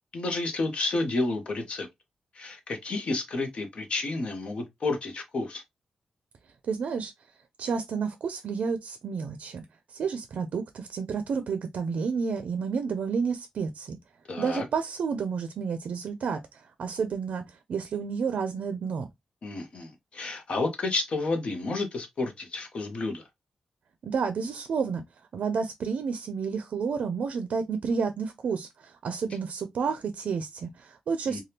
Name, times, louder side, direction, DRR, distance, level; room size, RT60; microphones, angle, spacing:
voice 1, 0.1-1.9 2.3-5.6 14.3-14.6 19.4-23.2 31.3-31.4, left 3 dB, 55° left, 0.8 m, -30 dB
voice 2, 6.6-7.1 7.6-9.6 9.9-14.0 14.4-19.1 24.0-25.0 25.3-31.4, right 5 dB, 85° right, 0.4 m, -30 dB
3.3 x 2.3 x 2.7 m
wide cardioid pair, 150°, 2 cm